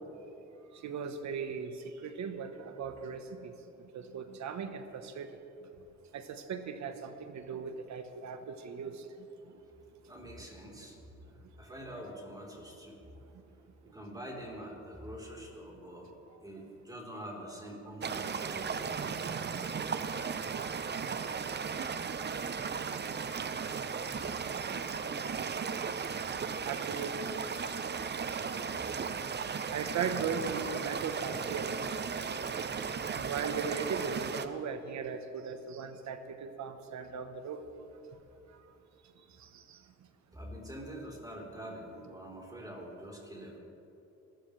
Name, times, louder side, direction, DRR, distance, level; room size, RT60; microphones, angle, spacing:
voice 1, 0.8-3.5 3.9-5.3 6.1-9.0 20.1-20.5 24.5-24.6 26.7-27.2 29.7-31.8 33.1-37.6 39.4-39.8, right 6 dB, 65° right, 8 dB, 1.3 m, -38 dB
voice 2, 10.1-11.0 11.6-13.0 13.8-16.1 16.4-19.1 40.3-43.6, equal, 10° right, -3 dB, 4.1 m, -45 dB
sound 1, 18.0-34.5, right 6 dB, 35° right, 0.8 m, -36 dB
27.5 x 14.0 x 3.4 m, 2.9 s
cardioid pair, 90°, 30 cm